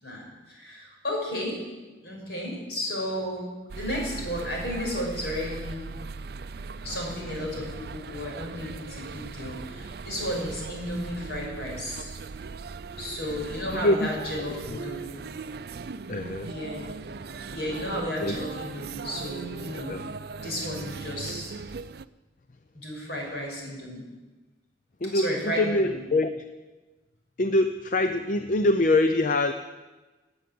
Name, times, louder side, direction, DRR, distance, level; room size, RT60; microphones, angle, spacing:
voice 1, 0.0-1.6 2.0-5.9 6.8-12.1 13.0-15.2 16.4-17.0 17.5-19.9 20.4-21.5 22.7-24.0 25.1-26.0, left 1 dB, 65° left, -1 dB, 6.2 m, -33 dB
sound 1, 3.7-22.0, right 4 dB, 60° right, 0.4 m, -39 dB
voice 2, 16.1-16.5 18.2-18.4 19.9-20.0 25.0-26.4 27.4-29.5, left 2 dB, 45° left, 8 dB, 0.6 m, -24 dB
18.5 x 8.5 x 7.8 m, 1.2 s
head